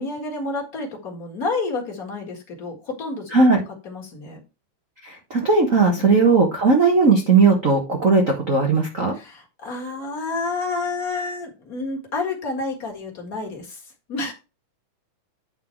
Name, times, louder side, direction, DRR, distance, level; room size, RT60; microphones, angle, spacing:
voice 1, 0.0-3.4 3.8-4.4 6.0-6.1 9.1-13.8 14.1-14.3, left 3 dB, 35° left, 0 dB, 1.7 m, -29 dB
voice 2, 5.0-9.1, right 4 dB, 80° right, 1 dB, 0.7 m, -17 dB
10.5 x 4.0 x 4.5 m, 0.28 s
omnidirectional pair, 3.7 m